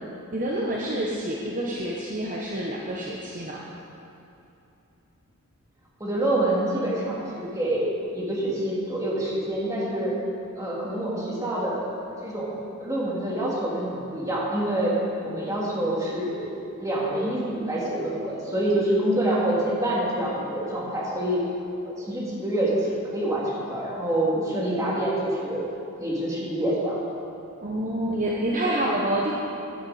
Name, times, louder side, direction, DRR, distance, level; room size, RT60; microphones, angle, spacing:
voice 1, 0.3-3.6 27.6-29.3, right 1 dB, 40° right, -3 dB, 1.0 m, -27 dB
voice 2, 6.0-10.1 10.5-11.9 12.2-12.5 12.8-14.9 15.2-16.5 16.8-21.4 21.8-25.6 26.0-27.0, right 1 dB, 15° right, -6 dB, 2.6 m, -26 dB
14.0 x 10.0 x 4.3 m, 2.9 s
head